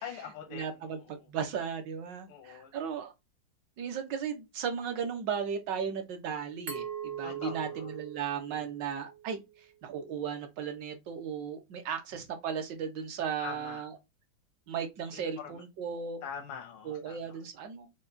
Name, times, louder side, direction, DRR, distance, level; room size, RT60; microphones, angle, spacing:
voice 1, 0.0-1.3 2.3-2.7 7.2-8.0 8.4-8.7 13.4-13.9 15.1-15.6 16.2-17.4, left 8 dB, 85° left, 1.6 m, -44 dB
voice 2, 0.5-1.0 1.3-3.1 3.8-9.4 9.8-13.9 14.7-16.2 16.9-17.9, right 7 dB, 65° right, 1.5 m, -36 dB
Glass, 6.7-9.5, right 8 dB, 40° right, 0.9 m, -41 dB
5.6 x 2.4 x 2.5 m
omnidirectional pair, 2.2 m